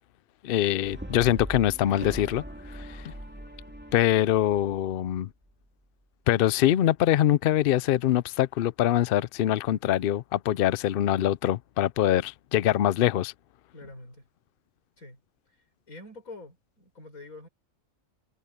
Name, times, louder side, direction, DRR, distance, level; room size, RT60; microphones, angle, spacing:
voice 1, 0.4-2.4 2.7-3.1 3.9-5.3 6.3-13.3, left 12 dB, 65° left, 0.5 m, -24 dB
Brass instrument, 0.8-5.1, equal, 10° right, 2.1 m, -40 dB
voice 2, 13.7-14.3 15.0-15.2 15.5-17.5, left 2 dB, 90° left, 6.7 m, -46 dB
omnidirectional pair, 1.4 m